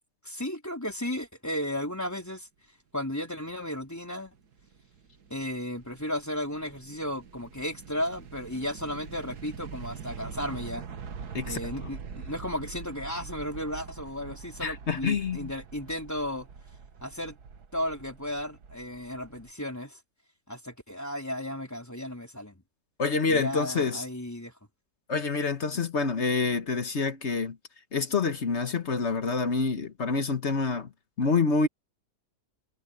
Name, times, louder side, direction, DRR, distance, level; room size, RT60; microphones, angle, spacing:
voice 1, 0.2-2.5 2.9-4.3 5.3-10.9 11.4-16.5 17.0-17.3 17.7-20.0 20.5-22.6 23.3-24.5, left 1 dB, 10° left, 3.8 m, -34 dB
sound 1, 4.0-19.5, right 6 dB, 70° right, 1.9 m, -44 dB
voice 2, 14.6-15.5 23.0-24.0 25.1-27.6 27.9-30.9 31.2-31.7, left 4 dB, 45° left, 1.4 m, -27 dB
omnidirectional pair, 1.8 m